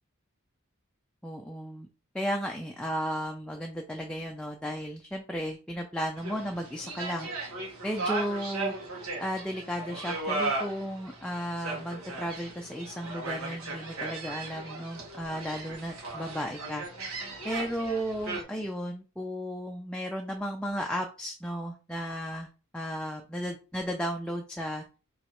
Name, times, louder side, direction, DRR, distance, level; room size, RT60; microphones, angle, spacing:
voice 1, 1.2-1.9 2.1-7.3 7.8-8.7 9.2-16.9 17.4-22.5 22.7-24.8, equal, 5° left, 1 dB, 0.4 m, -34 dB
sound 1, 6.2-18.4, right 3 dB, 85° right, 1.6 m, -37 dB
4.9 x 3.1 x 3.0 m, 0.34 s
head